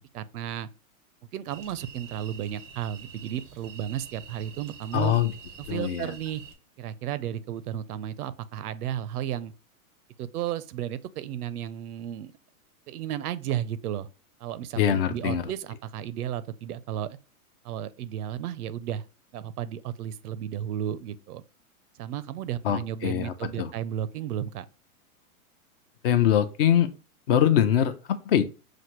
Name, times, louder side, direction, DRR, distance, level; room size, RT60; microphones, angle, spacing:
voice 1, 0.1-0.7 1.3-5.2 5.7-6.4 6.8-9.5 10.2-12.4 12.9-14.1 14.4-17.2 17.6-19.0 19.3-21.4 22.0-24.7, right 10 dB, 85° right, 0.6 m, -33 dB
sound 1, 1.5-6.5, right 6 dB, 15° right, 0.4 m, -46 dB
voice 2, 4.9-5.3 5.7-6.2 14.8-15.4 22.6-23.7 26.0-26.9 27.3-28.5, left 10 dB, 40° left, 0.4 m, -23 dB
6.0 x 2.6 x 3.0 m
hypercardioid pair, 145°, 44 cm